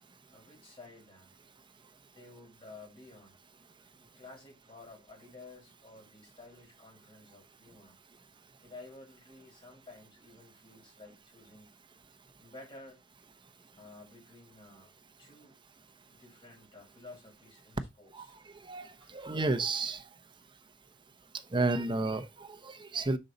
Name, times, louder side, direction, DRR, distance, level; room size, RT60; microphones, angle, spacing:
voice 1, 0.3-1.3 2.1-3.4 4.0-8.0 8.6-11.7 12.4-13.0 13.7-14.9 15.2-15.6 16.1-18.4 19.0-19.1, left 2 dB, 25° left, 5.1 m, -53 dB
voice 2, 18.6-20.0 21.5-23.2, right 3 dB, 25° right, 0.7 m, -32 dB
6.3 x 5.3 x 4.0 m
head